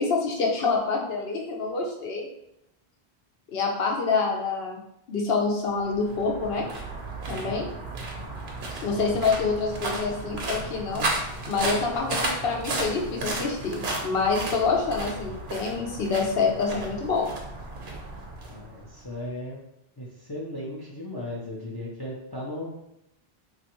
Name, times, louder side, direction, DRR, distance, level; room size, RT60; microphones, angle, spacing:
voice 1, 0.0-2.3 3.5-4.8 5.1-6.7 7.3-7.7 8.8-11.1 11.5-17.3, left 4 dB, 75° left, 1 dB, 0.9 m, -26 dB
sound 1, 5.7-19.1, right 2 dB, 80° right, 0.9 m, -34 dB
voice 2, 7.3-7.6 18.5-19.6 20.0-22.7, left 1 dB, 35° left, -5 dB, 0.4 m, -36 dB
3.2 x 2.4 x 2.9 m, 0.83 s
omnidirectional pair, 1.1 m